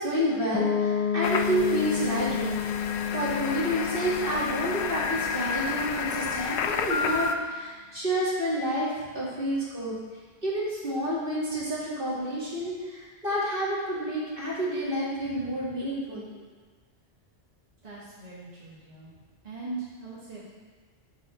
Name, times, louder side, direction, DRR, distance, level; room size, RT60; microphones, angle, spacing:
voice 1, 0.0-2.6 2.8-9.9 10.4-16.4, equal, 50° right, -7 dB, 2.4 m, -29 dB
Piano, 0.5-6.2, left 7 dB, 10° left, 1.3 m, -31 dB
sound 1, 1.2-7.4, left 6 dB, 75° left, 0.8 m, -31 dB
voice 2, 17.8-19.1 19.4-20.5, right 3 dB, 35° right, -9 dB, 2.0 m, -40 dB
12.0 x 4.6 x 4.4 m, 1.5 s
omnidirectional pair, 1.1 m